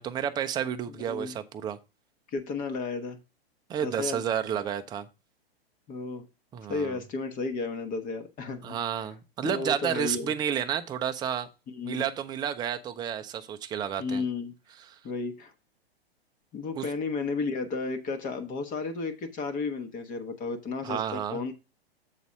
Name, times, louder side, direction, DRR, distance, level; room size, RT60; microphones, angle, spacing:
voice 1, 0.0-1.8 3.7-5.1 6.5-7.0 8.6-11.5 11.8-14.2 16.8-16.9 20.8-21.4, right 9 dB, 15° right, 8 dB, 0.5 m, -31 dB
voice 2, 1.0-1.4 2.3-3.2 3.8-4.2 5.9-6.2 6.7-8.8 9.4-10.3 11.7-12.1 14.0-14.5 15.0-15.5 16.5-21.5, left 4 dB, 25° left, 7 dB, 1.0 m, -33 dB
7.3 x 4.0 x 6.3 m, 0.28 s
hypercardioid pair, 110°, 31 cm